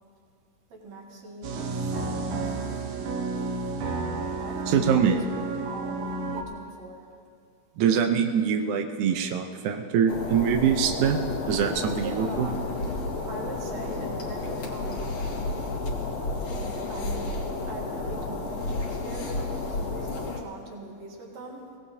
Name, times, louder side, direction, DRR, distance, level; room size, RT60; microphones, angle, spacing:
voice 1, 0.7-3.0 4.4-7.0 11.9-12.6 13.3-15.1 16.5-17.4 17.7-21.6, right 2 dB, 50° right, -2 dB, 3.2 m, -42 dB
sound 1, 1.4-6.4, right 3 dB, 65° right, 2.1 m, -31 dB
voice 2, 4.7-5.2 7.8-12.5, right 7 dB, 90° right, 4 dB, 1.7 m, -24 dB
sound 2, 10.1-20.4, left 3 dB, 50° left, 2.4 m, -31 dB
24.0 x 17.5 x 2.8 m, 2.3 s
omnidirectional pair, 4.6 m